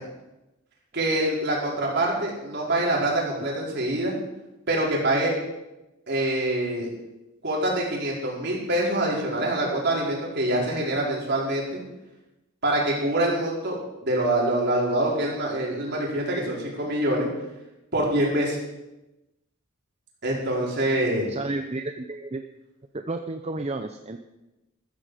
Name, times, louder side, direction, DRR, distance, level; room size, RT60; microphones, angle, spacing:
voice 1, 0.9-4.1 4.7-5.3 6.1-6.9 7.4-11.8 12.6-13.7 14.0-17.3 17.9-18.6 20.2-21.3, right 1 dB, 55° right, -3 dB, 4.8 m, -25 dB
voice 2, 21.3-22.4 22.9-24.2, right 2 dB, 30° right, 6 dB, 0.7 m, -32 dB
14.5 x 14.5 x 5.0 m, 0.98 s
head